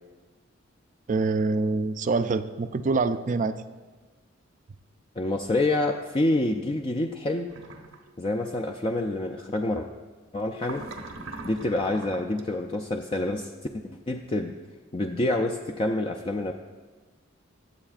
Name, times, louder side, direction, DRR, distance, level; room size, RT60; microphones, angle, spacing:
voice 1, 1.1-3.5, right 3 dB, 40° right, 11 dB, 0.4 m, -25 dB
voice 2, 5.2-7.5 8.2-9.9 10.3-10.8 11.4-13.5 13.8-14.6 14.9-16.5, left 2 dB, 25° left, 2 dB, 0.4 m, -27 dB
sound 1, 7.5-8.0 10.6-12.4, right 3 dB, 80° right, 1.0 m, -41 dB
21.0 x 7.8 x 2.4 m, 1.3 s
head